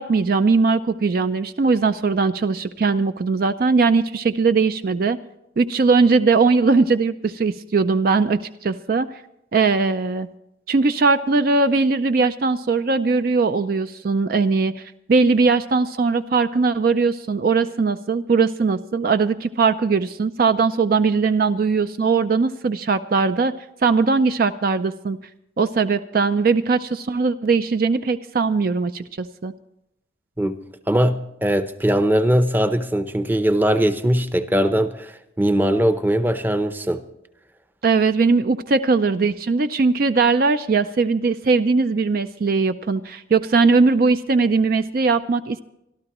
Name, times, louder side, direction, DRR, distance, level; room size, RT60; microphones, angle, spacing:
voice 1, 0.0-5.2 5.6-9.1 9.5-10.3 10.7-14.8 15.1-23.5 23.8-25.2 25.6-29.5 37.8-45.6, right 4 dB, 50° right, 11 dB, 0.4 m, -20 dB
voice 2, 30.9-37.0, equal, 10° right, 10 dB, 0.6 m, -20 dB
25.0 x 12.5 x 3.0 m, 0.82 s
head